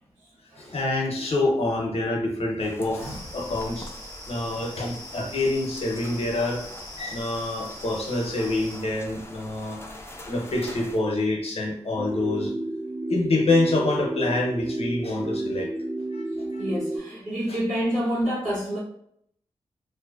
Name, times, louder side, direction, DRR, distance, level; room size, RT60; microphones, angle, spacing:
voice 1, 0.6-3.9 4.3-6.6 7.0-9.8 10.3-12.5 13.1-15.7 16.1-16.2 16.5-16.6 17.5-17.6, left 2 dB, 55° left, 0 dB, 0.7 m, -26 dB
sound 1, 2.6-11.0, left 1 dB, 20° left, 0.5 m, -43 dB
sound 2, 3.0-8.8, left 1 dB, 15° right, 0.9 m, -43 dB
sound 3, 12.0-17.0, right 2 dB, 65° right, 1.0 m, -31 dB
voice 2, 16.6-18.8, equal, 85° right, -8 dB, 1.0 m, -28 dB
2.5 x 2.1 x 2.4 m, 0.71 s
cardioid pair, 40°, 12 cm